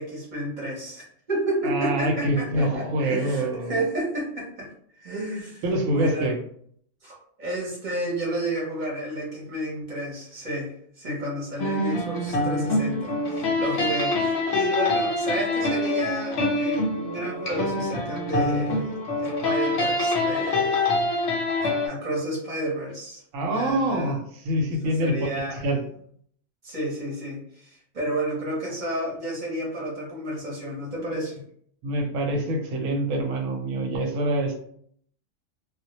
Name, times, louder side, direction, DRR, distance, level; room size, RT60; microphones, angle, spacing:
voice 1, 0.0-4.7 5.0-5.6 5.9-6.3 7.0-20.8 21.8-24.1 24.8-25.6 26.6-31.4, right 1 dB, 45° right, -4 dB, 0.7 m, -31 dB
voice 2, 1.6-3.7 5.6-6.4 23.3-25.2 25.6-25.8 31.8-34.6, right 1 dB, 90° right, 2 dB, 1.0 m, -25 dB
sound 1, 11.6-21.9, left 2 dB, 65° left, 0.7 m, -25 dB
2.1 x 2.1 x 2.8 m, 0.63 s
omnidirectional pair, 1.3 m